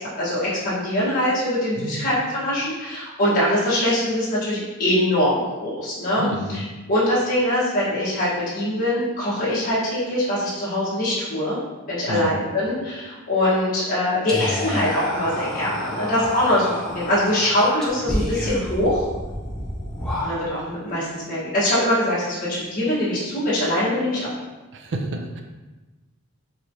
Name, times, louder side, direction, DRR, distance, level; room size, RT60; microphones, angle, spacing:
voice 1, 0.2-6.2 6.5-6.6 6.9-11.6 11.9-19.0 20.2-24.2, left 1 dB, 40° left, -11 dB, 1.4 m, -23 dB
voice 2, 6.2-6.6 12.1-12.3 24.7-25.4, right 1 dB, 55° right, 3 dB, 0.5 m, -29 dB
Whispering, 14.3-20.7, left 1 dB, ahead, 0.8 m, -29 dB
4.8 x 3.1 x 2.7 m, 1.2 s
head